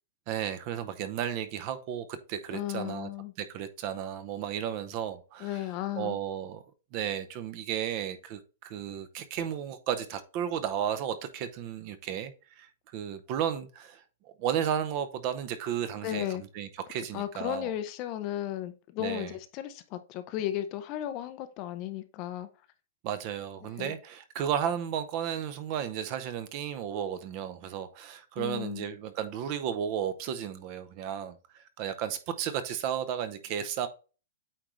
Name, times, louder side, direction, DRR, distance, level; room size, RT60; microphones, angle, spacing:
voice 1, 0.3-3.1 3.4-5.6 5.9-6.6 6.9-17.7 19.0-19.3 23.0-33.9, right 9 dB, 30° right, 0.6 m, -34 dB
voice 2, 2.5-3.3 5.4-6.2 16.0-16.4 17.1-22.5 23.8-23.9 28.4-28.9, left 12 dB, 25° left, 0.5 m, -35 dB
8.6 x 3.8 x 3.1 m
hypercardioid pair, 175°, 0 cm